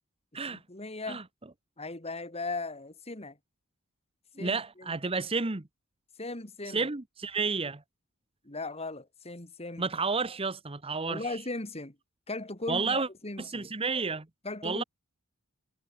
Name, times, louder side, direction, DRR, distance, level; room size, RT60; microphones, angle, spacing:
voice 1, 0.5-1.2 1.8-3.4 4.4-5.0 6.2-6.9 8.4-9.8 11.0-12.0 12.3-13.7 14.4-14.8, left 2 dB, 30° left, 2.8 m, -38 dB
voice 2, 4.4-5.7 6.7-7.8 9.8-11.3 12.7-13.1 13.4-14.3 14.6-14.8, right 4 dB, 25° right, 1.0 m, -31 dB
head